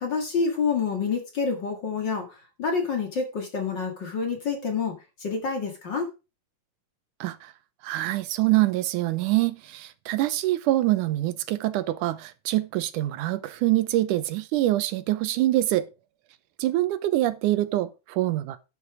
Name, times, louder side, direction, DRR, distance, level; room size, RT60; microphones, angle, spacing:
voice 1, 0.0-2.3 2.6-6.1, left 5 dB, 40° left, 2.2 m, -28 dB
voice 2, 7.2-7.5 7.8-15.9 16.6-18.6, right 15 dB, 80° right, 2.2 m, -25 dB
11.0 x 6.9 x 4.9 m
omnidirectional pair, 3.7 m